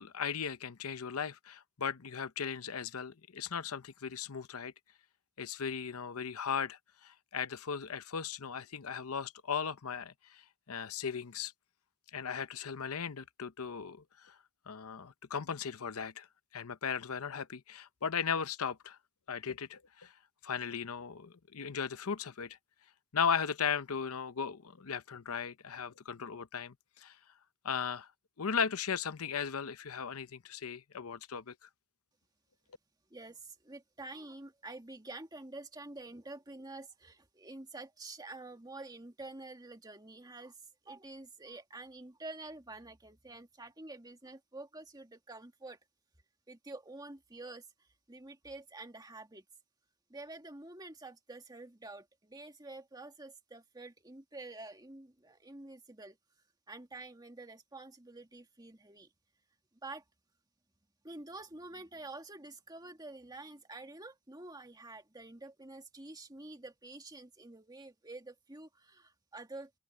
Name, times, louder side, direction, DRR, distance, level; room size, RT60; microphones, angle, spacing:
voice 1, 0.0-4.7 5.4-10.4 10.7-11.5 12.1-14.3 14.7-16.3 16.5-19.0 19.3-20.1 20.4-22.6 23.1-27.2 27.6-28.1 28.4-31.7, left 6 dB, 75° left, 0.8 m, -37 dB
voice 2, 33.1-40.6 40.8-45.8 46.5-49.4 50.1-56.2 56.7-59.1 59.8-60.0 61.0-69.7, right 2 dB, 20° right, 1.9 m, -48 dB
head